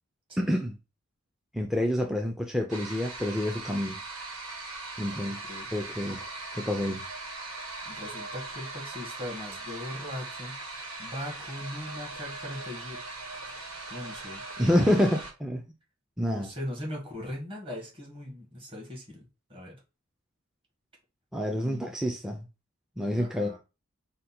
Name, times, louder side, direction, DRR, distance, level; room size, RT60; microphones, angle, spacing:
voice 1, 0.4-0.8 1.5-4.0 5.0-5.4 5.7-6.2 6.5-7.0 14.6-15.6 16.2-16.5 21.3-22.5 23.0-23.6, equal, ahead, 0.4 m, -28 dB
sound 1, 2.7-15.3, right 2 dB, 85° right, 1.4 m, -40 dB
voice 2, 5.2-5.7 7.8-13.0 13.5-14.4 16.2-19.8 21.5-21.9 23.1-23.6, left 1 dB, 25° right, 1.7 m, -40 dB
5.1 x 2.2 x 4.3 m
head